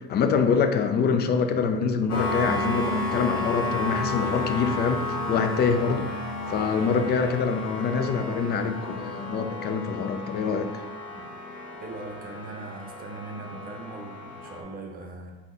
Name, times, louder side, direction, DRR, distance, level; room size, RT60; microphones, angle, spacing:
voice 1, 0.0-6.1 6.5-10.8, left 5 dB, 35° left, 8 dB, 0.4 m, -25 dB
sound 1, 2.1-14.6, left 2 dB, 65° left, 1.1 m, -32 dB
voice 2, 11.8-15.3, right 3 dB, 30° right, 2 dB, 0.7 m, -40 dB
3.7 x 2.9 x 3.7 m, 1.2 s
supercardioid pair, 95°, 29 cm